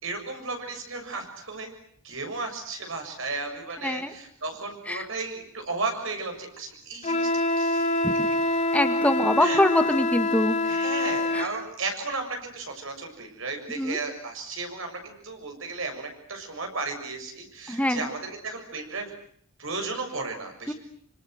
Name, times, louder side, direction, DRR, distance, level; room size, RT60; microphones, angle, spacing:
voice 1, 0.0-1.7 2.0-7.3 7.6-7.9 8.3-8.4 9.4-9.6 10.6-19.1 19.6-20.7, right 3 dB, 65° right, 5 dB, 7.0 m, -34 dB
Wind instrument woodwind instrument, 7.0-11.5, left 2 dB, 35° left, 2.8 m, -25 dB
voice 2, 8.7-10.6 11.3-11.5 13.7-14.0 17.7-18.1 20.7-20.8, left 1 dB, 5° left, 7 dB, 1.7 m, -24 dB
26.5 x 26.0 x 7.9 m, 0.64 s
head